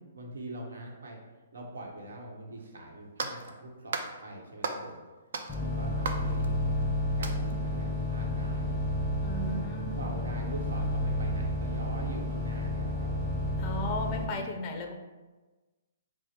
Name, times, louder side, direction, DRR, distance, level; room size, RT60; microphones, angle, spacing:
voice 1, 0.1-1.2 1.5-5.0 5.6-6.6 7.2-8.7 9.9-13.3, right 1 dB, 85° right, 1 dB, 1.0 m, -43 dB
sound 1, 2.6-2.7 3.2-3.5 3.9-4.1 4.6-5.0 5.3-6.8 7.2-7.6, right 4 dB, 65° right, 0.4 m, -36 dB
sound 2, 5.5-14.3, left 1 dB, ahead, 0.9 m, -31 dB
voice 2, 9.2-10.3 13.6-14.9, left 1 dB, 25° left, 2 dB, 0.4 m, -36 dB
4.6 x 2.0 x 4.3 m, 1.2 s
hypercardioid pair, 165°, 0 cm